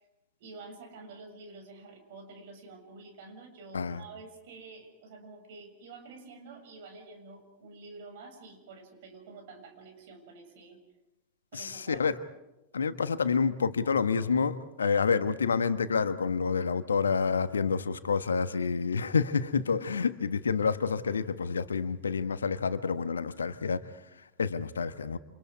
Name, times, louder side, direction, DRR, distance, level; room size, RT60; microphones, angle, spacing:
voice 1, 0.4-10.8 11.5-12.1, right 3 dB, 55° right, 7.0 m, -48 dB
voice 2, 11.5-12.2 12.7-25.2, left 5 dB, 70° left, 1.3 m, -28 dB
29.5 x 28.0 x 4.9 m
figure-of-eight pair, 90°, 0 cm